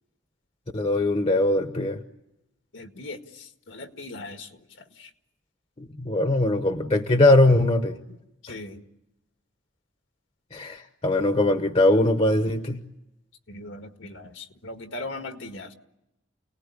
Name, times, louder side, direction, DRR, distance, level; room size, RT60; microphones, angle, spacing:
voice 1, 0.7-2.0 5.8-8.0 10.5-12.8, left 1 dB, 30° left, 7 dB, 1.0 m, -21 dB
voice 2, 2.7-3.2 3.7-4.5 5.0-5.1 8.4-8.8 13.5-15.7, left 2 dB, 75° left, 6 dB, 1.9 m, -38 dB
29.5 x 19.0 x 9.8 m, 0.92 s
head